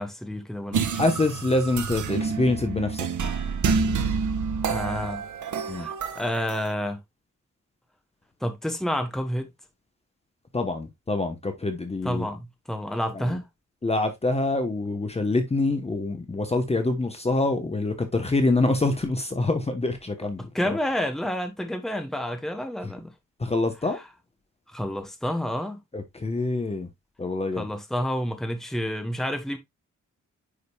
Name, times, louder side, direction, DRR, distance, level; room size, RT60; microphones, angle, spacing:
voice 1, 0.0-1.0 4.7-5.2 5.6-7.0 8.4-9.5 12.0-13.5 20.5-23.1 23.9-24.0 24.7-25.8 27.6-29.6, equal, ahead, 1.0 m, -29 dB
sound 1, 0.7-6.7, right 5 dB, 85° right, 1.1 m, -28 dB
voice 2, 1.0-3.1 5.7-5.9 10.5-12.3 13.1-13.4 13.8-20.5 23.4-24.0 25.9-26.9 27.2-27.7, left 2 dB, 20° left, 0.9 m, -25 dB
9.8 x 5.1 x 2.2 m
wide cardioid pair, 155°, 30 cm